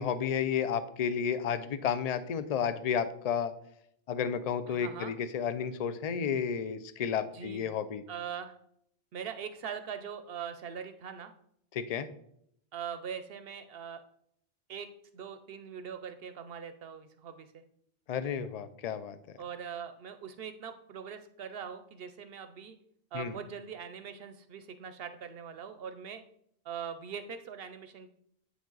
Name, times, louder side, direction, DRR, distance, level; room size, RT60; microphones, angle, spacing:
voice 1, 0.0-3.5 4.1-8.0 11.7-12.1 18.1-19.2 23.1-23.4, left 7 dB, 55° left, 12 dB, 0.4 m, -32 dB
voice 2, 4.7-5.1 7.3-7.7 8.1-8.5 9.1-11.3 12.7-14.0 14.7-14.9 15.1-17.6 19.4-22.8 23.1-26.2 26.6-28.1, right 7 dB, 65° right, 9 dB, 0.7 m, -42 dB
8.2 x 5.0 x 3.9 m, 0.71 s
omnidirectional pair, 1.1 m